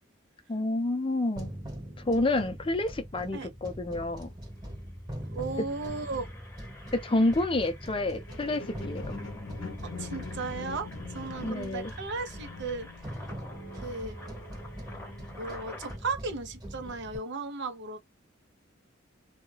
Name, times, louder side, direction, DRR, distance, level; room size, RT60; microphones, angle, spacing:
voice 1, 0.5-1.5 2.1-4.3 6.9-9.1 11.4-11.9, left 2 dB, 25° left, 0.5 m, -29 dB
sound 1, 1.4-17.2, equal, 20° right, 1.3 m, -42 dB
Engine, 4.6-4.8 5.3-16.0, left 2 dB, 10° left, 0.9 m, -50 dB
voice 2, 5.3-6.3 9.8-12.9 13.8-14.1 15.4-18.0, right 3 dB, 60° right, 0.6 m, -35 dB
sound 2, 8.3-15.7 16.3-16.4, left 3 dB, 80° left, 0.6 m, -44 dB
2.3 x 2.2 x 3.1 m
head